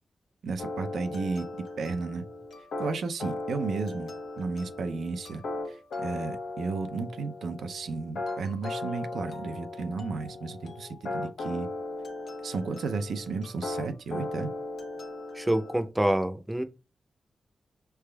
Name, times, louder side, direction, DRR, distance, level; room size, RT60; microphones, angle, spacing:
voice 1, 0.4-1.5 1.8-2.2 2.8-11.7 12.4-14.5, right 4 dB, 80° right, 0.4 m, -33 dB
sound 1, 0.6-15.9, left 2 dB, 80° left, 0.7 m, -37 dB
voice 2, 15.4-16.6, right 1 dB, 15° right, 0.5 m, -26 dB
5.8 x 3.4 x 2.2 m
cardioid pair, 55°, 0 cm